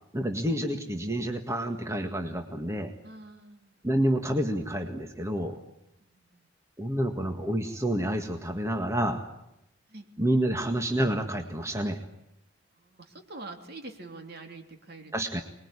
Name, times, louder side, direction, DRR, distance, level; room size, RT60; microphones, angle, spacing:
voice 1, 0.1-2.9 3.8-5.6 6.8-9.2 10.2-12.0 15.1-15.4, right 1 dB, 15° right, 5 dB, 1.8 m, -28 dB
voice 2, 3.0-3.8 6.0-6.5 9.9-10.1 12.8-15.1, right 2 dB, 55° right, 5 dB, 3.1 m, -45 dB
26.0 x 21.0 x 9.9 m, 0.85 s
head